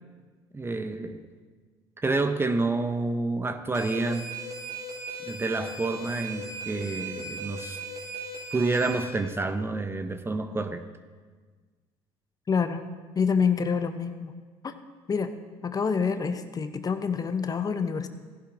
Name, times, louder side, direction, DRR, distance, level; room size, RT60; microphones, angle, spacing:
voice 1, 0.5-1.3 2.0-4.2 5.2-7.8 8.5-10.9, right 3 dB, 20° right, 9 dB, 0.7 m, -28 dB
sound 1, 3.7-9.1, right 2 dB, 65° right, 3.4 m, -37 dB
voice 2, 12.5-12.8 13.2-14.3 14.6-14.7 15.1-15.3 15.6-18.1, left 6 dB, 30° left, 9 dB, 0.7 m, -27 dB
15.0 x 11.0 x 2.6 m, 1.5 s
supercardioid pair, 75°, 12 cm